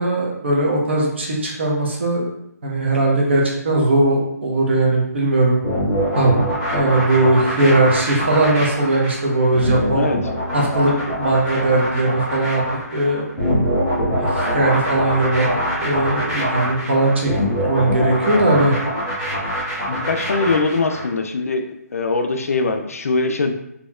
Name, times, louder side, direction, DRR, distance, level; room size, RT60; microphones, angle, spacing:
voice 1, 0.0-2.2 2.6-5.6 6.2-6.4 6.7-10.1 10.5-12.6 12.9-13.2 14.2-15.4 15.8-17.3 17.6-18.7, right 2 dB, 40° right, -2 dB, 0.8 m, -19 dB
sound 1, 5.6-21.1, equal, 5° right, 1.2 m, -24 dB
voice 2, 19.9-21.6 21.9-23.5, left 3 dB, 60° left, 5 dB, 0.4 m, -21 dB
4.2 x 2.8 x 2.3 m, 0.80 s
hypercardioid pair, 175°, 9 cm